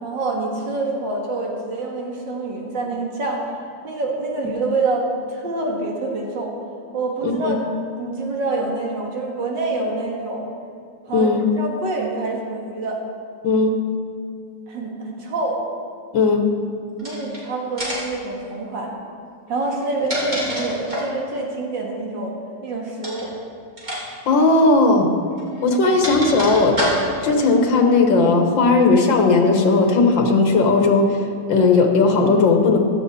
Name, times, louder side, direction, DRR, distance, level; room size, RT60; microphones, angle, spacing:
voice 1, 0.0-3.6 3.8-6.5 6.9-7.6 7.9-10.4 11.1-11.3 11.6-13.0 14.7-15.6 17.0-18.9 19.5-22.4 22.6-23.3, right 2 dB, 75° right, -1 dB, 2.4 m, -26 dB
voice 2, 7.2-7.6 11.1-11.4 13.4-13.7 16.1-16.5 24.3-25.1 25.6-26.8 27.2-32.8, left 3 dB, 90° left, 3 dB, 2.1 m, -16 dB
sound 1, 17.0-17.4 17.8-18.2 19.7-21.2 23.0-23.3 23.8-24.0 24.3-24.4 25.4-27.3, equal, 25° right, 3.2 m, -26 dB
15.0 x 12.5 x 4.3 m, 2.3 s
omnidirectional pair, 2.0 m